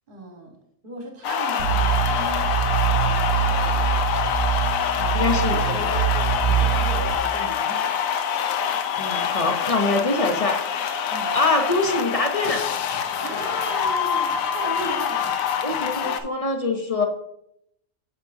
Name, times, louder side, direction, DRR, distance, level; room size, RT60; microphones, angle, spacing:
voice 1, 0.1-0.6 0.8-4.1 4.9-8.0 11.1-11.3 13.0-15.4, right 2 dB, 40° right, 1 dB, 1.5 m, -37 dB
sound 1, 1.2-16.2, left 7 dB, 80° left, 1.0 m, -25 dB
sound 2, 1.6-7.2, right 10 dB, 85° right, 1.1 m, -24 dB
voice 2, 5.1-5.9 6.5-6.6 9.0-12.7 13.3-13.4 15.6-17.0, left 3 dB, 40° left, 4 dB, 0.5 m, -24 dB
8.1 x 6.0 x 2.6 m, 0.76 s
omnidirectional pair, 1.4 m